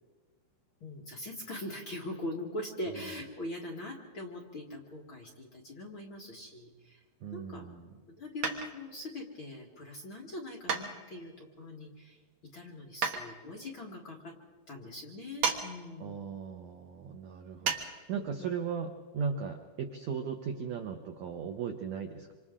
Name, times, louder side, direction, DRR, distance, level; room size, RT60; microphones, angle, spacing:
voice 1, 0.8-7.0 7.3-7.7 8.1-12.2 12.5-14.3 14.7-16.2 18.1-18.3, left 1 dB, 45° left, -2 dB, 1.7 m, -42 dB
voice 2, 7.2-8.0 16.0-22.3, right 6 dB, 80° right, 5 dB, 1.6 m, -37 dB
sound 1, 8.4-9.0 10.7-11.4 13.0-13.3 15.4-15.7 15.9-16.0 17.7-17.9 18.2-18.3, right 6 dB, 55° right, 2.2 m, -32 dB
26.5 x 26.0 x 3.8 m, 1.4 s
omnidirectional pair, 4.6 m